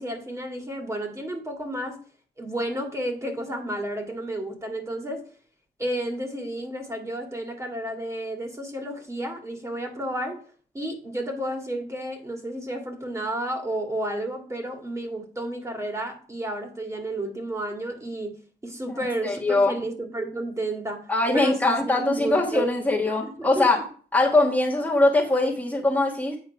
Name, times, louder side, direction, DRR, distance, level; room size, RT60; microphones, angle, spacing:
voice 1, 0.0-2.0 2.4-5.2 5.8-10.4 10.7-18.3 18.6-21.0 21.3-22.7 23.2-23.8, right 1 dB, 15° right, 2 dB, 2.3 m, -31 dB
voice 2, 19.2-19.8 21.1-23.8 24.1-26.4, left 2 dB, 10° left, -4 dB, 1.5 m, -22 dB
8.7 x 4.3 x 4.8 m, 0.43 s
cardioid pair, 85°, 17 cm